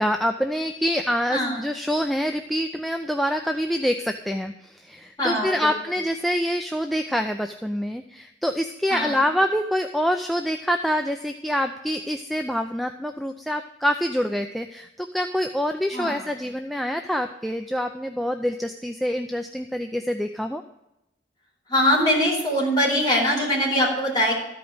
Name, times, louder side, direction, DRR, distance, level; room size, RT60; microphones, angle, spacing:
voice 1, 0.0-20.6, equal, ahead, 5 dB, 0.4 m, -26 dB
voice 2, 1.3-1.6 5.2-5.7 8.9-9.3 15.9-16.3 21.7-24.4, equal, 25° left, -4 dB, 4.1 m, -22 dB
13.5 x 5.2 x 8.7 m, 0.87 s
head